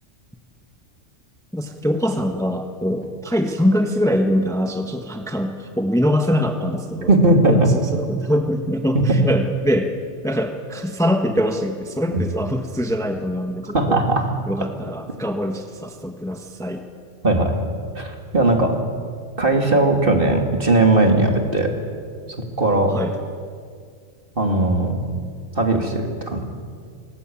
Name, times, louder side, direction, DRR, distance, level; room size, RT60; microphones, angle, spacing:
voice 1, 1.5-7.1 7.5-9.9 10.2-14.0 14.5-16.8 22.9-23.2, equal, 5° left, 5 dB, 1.3 m, -23 dB
voice 2, 7.1-7.7 8.9-9.0 13.7-14.2 17.2-17.6 17.9-18.8 19.4-21.7 22.6-22.9 24.4-25.0 25.5-26.4, right 2 dB, 45° right, 3 dB, 3.0 m, -18 dB
23.5 x 19.0 x 9.0 m, 2.1 s
omnidirectional pair, 1.3 m